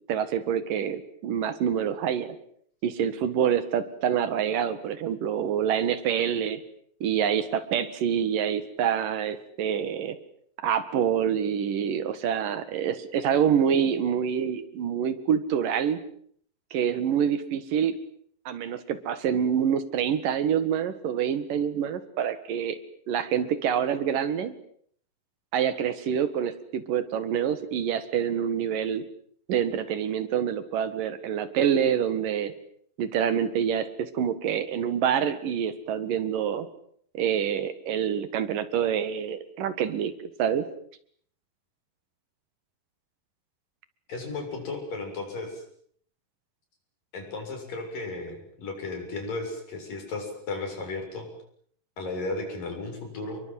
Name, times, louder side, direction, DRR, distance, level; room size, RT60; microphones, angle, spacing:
voice 1, 0.1-2.3 2.8-6.6 7.0-10.2 10.6-16.0 16.7-18.0 18.5-22.8 23.1-24.5 25.5-29.0 29.5-32.5 33.0-36.7 37.1-40.1 40.4-40.7, right 8 dB, 75° right, 12 dB, 3.3 m, -26 dB
voice 2, 44.1-45.6 47.1-51.3 52.0-53.4, left 3 dB, 75° left, 3 dB, 8.8 m, -34 dB
29.5 x 22.0 x 7.7 m, 0.63 s
omnidirectional pair, 4.0 m